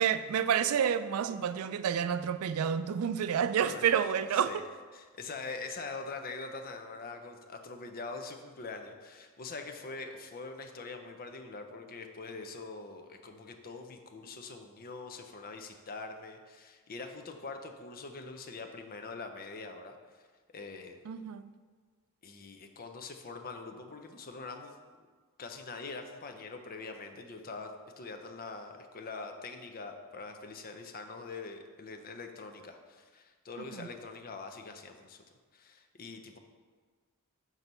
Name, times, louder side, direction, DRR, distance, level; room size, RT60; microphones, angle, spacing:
voice 1, 0.0-4.6 21.1-21.5 33.8-33.9, right 8 dB, 80° right, 12 dB, 0.4 m, -29 dB
voice 2, 4.9-20.0 20.5-21.0 22.2-24.8 25.4-35.2 35.5-36.4, left 3 dB, 45° left, 5 dB, 0.6 m, -43 dB
6.1 x 4.0 x 5.4 m, 1.5 s
head